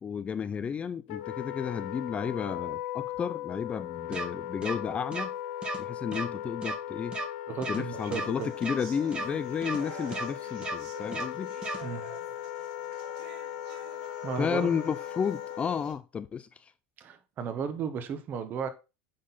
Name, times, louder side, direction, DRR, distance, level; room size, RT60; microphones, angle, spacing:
voice 1, 0.0-5.3 5.8-7.2 7.7-11.5 14.4-16.7, left 7 dB, 25° left, 0.4 m, -32 dB
Wind instrument woodwind instrument, 1.1-16.0, left 12 dB, 80° left, 0.6 m, -38 dB
sound 1, 4.1-4.2 4.6-4.7 5.1-5.2 5.6-5.8 6.1-6.2 6.6-6.7 7.1-7.2 7.6-7.8 8.1-8.2 8.6-8.7 9.1-9.2 9.6-9.8 10.1-10.2 10.6-10.7 11.1-11.2 11.6-11.8, right 2 dB, 20° right, 1.2 m, -34 dB
voice 2, 7.5-8.5 11.8-12.1 14.2-14.7 17.0-18.7, right 6 dB, 40° right, 1.1 m, -34 dB
sound 2, 7.9-15.9, right 6 dB, 65° right, 1.9 m, -49 dB
8.6 x 3.9 x 4.1 m
supercardioid pair, 130°, 5 cm